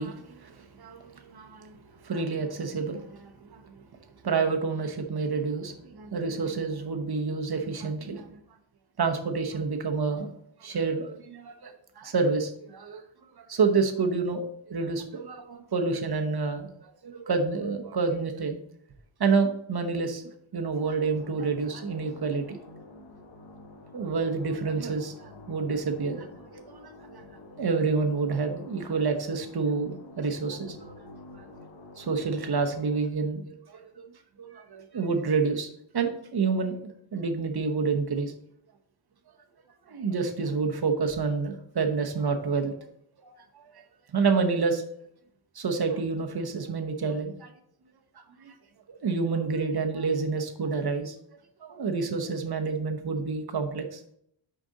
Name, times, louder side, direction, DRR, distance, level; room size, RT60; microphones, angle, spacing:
voice 1, 0.0-3.7 4.2-8.4 9.0-10.3 10.6-13.0 13.4-18.6 19.2-20.2 20.5-22.6 23.9-27.2 27.6-30.9 31.3-31.4 32.0-33.8 34.4-38.3 39.9-42.7 43.2-43.8 44.1-44.8 45.5-47.5 48.4-48.5 48.9-51.1 51.6-54.0, right 4 dB, 50° right, 5 dB, 0.9 m, -29 dB
sound 1, 21.1-33.0, left 2 dB, 60° left, 1.5 m, -48 dB
6.3 x 5.1 x 4.0 m, 0.70 s
wide cardioid pair, 130°, 47 cm